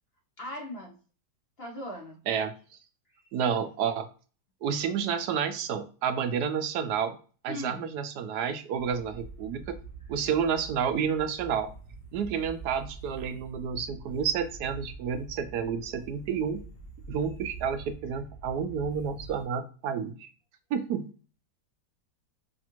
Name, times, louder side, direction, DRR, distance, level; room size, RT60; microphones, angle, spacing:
voice 1, 0.4-1.0 1.6-2.2 3.1-3.2 7.5-7.8, left 1 dB, 50° left, 0 dB, 0.9 m, -39 dB
voice 2, 3.3-4.1 4.6-7.2 7.4-9.8 10.1-11.7 12.1-16.6 17.1-20.3 20.7-21.0, right 7 dB, 75° right, 9 dB, 1.1 m, -30 dB
sound 1, 8.7-19.4, right 4 dB, 75° left, 2.1 m, -45 dB
5.2 x 2.4 x 2.9 m, 0.37 s
omnidirectional pair, 1.8 m